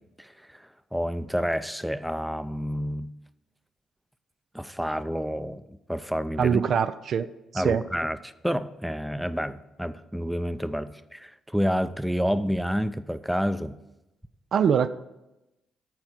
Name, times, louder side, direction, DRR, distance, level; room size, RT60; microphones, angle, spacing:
voice 1, 0.2-3.1 4.5-5.6 5.9-6.6 7.5-13.8, equal, 5° right, 13 dB, 0.5 m, -29 dB
voice 2, 6.4-7.3 7.5-7.8 14.5-14.9, right 7 dB, 65° right, 12 dB, 0.4 m, -23 dB
10.5 x 4.4 x 6.1 m, 0.95 s
supercardioid pair, 55°, 0 cm